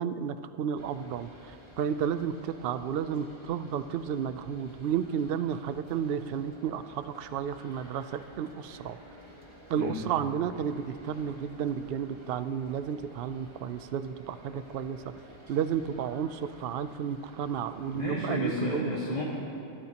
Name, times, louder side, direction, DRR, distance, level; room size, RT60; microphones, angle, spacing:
voice 1, 0.0-9.0 9.7-15.1 15.5-18.9, right 8 dB, 65° right, 12 dB, 0.7 m, -32 dB
sound 1, 0.8-18.1, equal, 25° right, 1.8 m, -52 dB
voice 2, 17.8-19.2, left 1 dB, 35° left, -7 dB, 1.8 m, -32 dB
22.5 x 13.5 x 2.9 m, 2.6 s
omnidirectional pair, 1.2 m